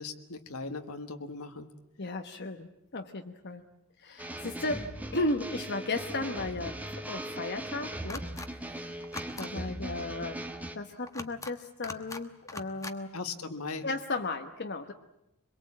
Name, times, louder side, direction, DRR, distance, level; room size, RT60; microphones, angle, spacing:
voice 1, 0.0-1.7 13.1-13.9, left 3 dB, 80° left, 6 dB, 1.7 m, -38 dB
voice 2, 2.0-3.6 4.0-4.8 5.1-6.8 7.1-8.2 8.6-9.0 9.4-10.5 10.7-13.2 13.8-14.9, left 2 dB, 50° left, 5 dB, 1.1 m, -35 dB
sound 1, 4.2-10.8, right 1 dB, 5° right, 1.5 m, -39 dB
sound 2, 8.1-8.5 9.0-9.5 11.1-11.5 11.8-12.2 12.5-13.0, left 3 dB, 15° left, 1.2 m, -41 dB
24.5 x 22.5 x 8.7 m, 0.85 s
head